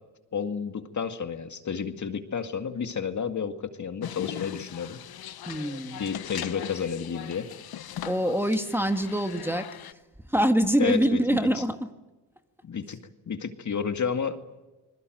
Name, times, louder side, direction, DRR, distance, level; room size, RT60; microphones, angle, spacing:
voice 1, 0.3-5.0 6.0-7.5 10.8-11.6 12.6-13.0 13.3-14.4, left 6 dB, 45° left, 7 dB, 2.1 m, -31 dB
sound 1, 4.0-9.9, left 11 dB, 60° left, 1.1 m, -39 dB
voice 2, 5.5-6.0 8.1-9.7 10.3-11.9, right 1 dB, 5° right, 7 dB, 1.7 m, -25 dB
27.0 x 21.0 x 7.8 m, 1.1 s
cardioid pair, 75°, 41 cm